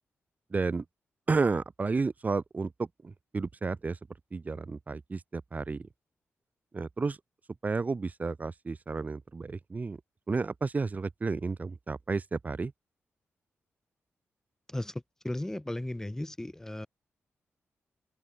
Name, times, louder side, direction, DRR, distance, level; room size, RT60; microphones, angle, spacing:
voice 1, 0.5-0.8 1.3-4.0 4.3-5.9 6.7-7.2 7.6-10.0 10.3-12.7, right 4 dB, 35° right, 1.3 m, -32 dB
voice 2, 14.7-16.9, left 1 dB, 10° left, 2.4 m, -36 dB
cardioid pair, 90°, 5 cm